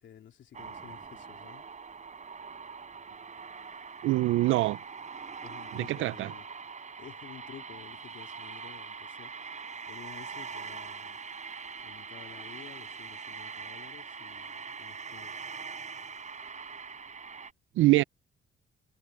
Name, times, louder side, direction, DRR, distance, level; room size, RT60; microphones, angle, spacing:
voice 1, 0.0-1.7 5.4-6.4 7.0-9.3 9.9-11.2 11.8-15.4, left 9 dB, 65° left, 3.3 m, -51 dB
sound 1, 0.5-17.5, right 5 dB, 35° right, 5.7 m, -43 dB
voice 2, 4.0-4.8 5.7-6.3 17.8-18.0, right 18 dB, 85° right, 0.5 m, -24 dB
cardioid pair, 90°, 20 cm